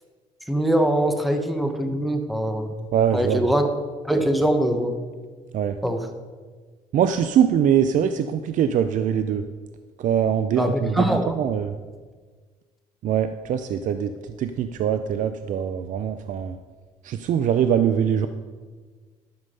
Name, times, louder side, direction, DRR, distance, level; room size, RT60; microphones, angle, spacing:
voice 1, 0.5-2.9 3.1-3.7 4.1-5.0 5.8-6.1 10.6-11.3, right 1 dB, ahead, 6 dB, 0.9 m, -22 dB
voice 2, 2.9-3.5 5.5-5.8 6.9-9.4 10.0-11.8 13.0-16.6 17.0-18.3, right 9 dB, 65° right, 10 dB, 0.5 m, -23 dB
11.5 x 7.1 x 5.4 m, 1.5 s
cardioid pair, 105°, 14 cm